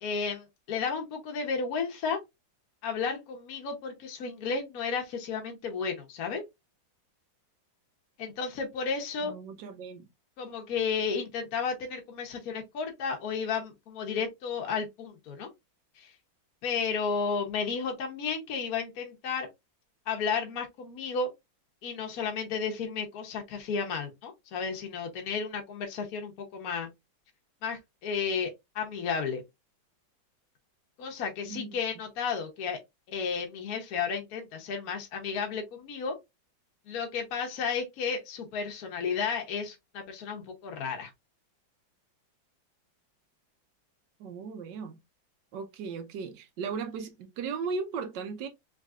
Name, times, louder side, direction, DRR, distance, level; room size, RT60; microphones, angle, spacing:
voice 1, 0.0-2.2 2.8-6.4 8.2-9.3 10.4-15.5 16.0-16.1 16.6-19.5 20.1-21.3 21.8-26.9 27.6-29.4 31.0-32.8 33.1-36.2 36.9-41.1, left 5 dB, 55° left, 1.2 m, -33 dB
voice 2, 9.2-10.1 31.4-31.7 44.2-45.0 45.5-48.5, right 5 dB, 70° right, 1.3 m, -36 dB
3.7 x 3.3 x 2.3 m
omnidirectional pair, 2.1 m